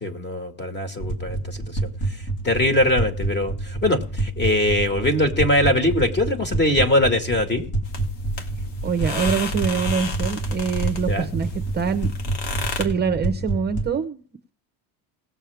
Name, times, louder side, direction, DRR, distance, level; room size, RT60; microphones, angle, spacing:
voice 1, 0.0-1.8 2.4-7.7 11.1-11.3, left 1 dB, 20° left, 8 dB, 1.8 m, -22 dB
sound 1, 1.0-14.0, right 2 dB, 55° left, 2.8 m, -28 dB
sound 2, 7.8-12.8, left 2 dB, 80° left, 2.2 m, -32 dB
voice 2, 8.8-12.1 12.8-14.2, right 6 dB, 20° right, 6 dB, 0.8 m, -24 dB
19.0 x 7.3 x 3.5 m, 0.41 s
cardioid pair, 140°, 47 cm